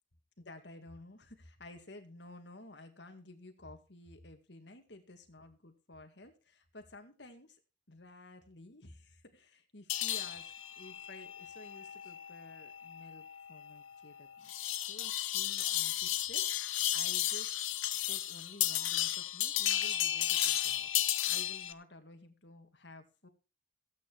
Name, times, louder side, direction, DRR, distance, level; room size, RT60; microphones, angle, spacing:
voice 1, 0.4-7.6 7.9-17.6 18.0-20.9 21.2-23.3, left 2 dB, 60° left, 6 dB, 2.2 m, -53 dB
sound 1, 9.9-21.7, left 13 dB, 85° left, 1.1 m, -34 dB
15.5 x 9.2 x 4.7 m, 0.32 s
head